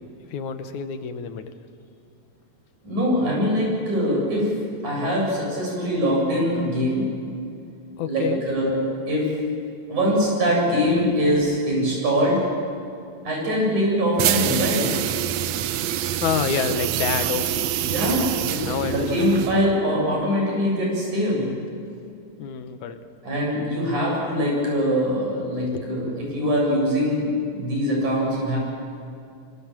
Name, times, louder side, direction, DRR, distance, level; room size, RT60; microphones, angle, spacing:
voice 1, 0.3-1.5 8.0-8.4 16.2-19.0 22.4-23.0 25.7-25.8 26.1-26.2, left 7 dB, 80° left, 8 dB, 2.7 m, -28 dB
voice 2, 2.8-4.5 4.8-7.0 8.1-9.3 9.9-12.5 13.2-15.0 17.8-21.5 23.2-27.2 27.5-28.6, equal, 90° right, -2 dB, 9.3 m, -23 dB
sound 1, 14.2-19.8, right 12 dB, 75° right, 1.8 m, -26 dB
25.5 x 25.5 x 7.5 m, 2.5 s
omnidirectional pair, 3.4 m